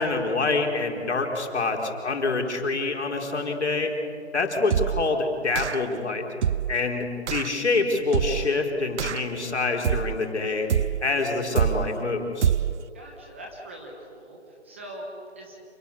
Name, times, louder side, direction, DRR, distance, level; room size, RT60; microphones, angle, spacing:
voice 1, 0.0-3.9 4.3-6.2 6.7-10.7 11.0-12.5, left 3 dB, 75° left, 1 dB, 4.7 m, -26 dB
sound 1, 4.7-5.1 5.5-5.9 6.4-6.8 7.3-7.5 8.1-8.5 9.0-9.4 9.8-10.3 10.7-11.1 11.5-12.0 12.4-12.8, right 9 dB, 85° right, 0.5 m, -26 dB
voice 2, 12.9-15.1 15.3-15.6, right 1 dB, 10° right, -1 dB, 1.3 m, -42 dB
28.0 x 21.0 x 7.2 m, 2.6 s
hypercardioid pair, 180°, 34 cm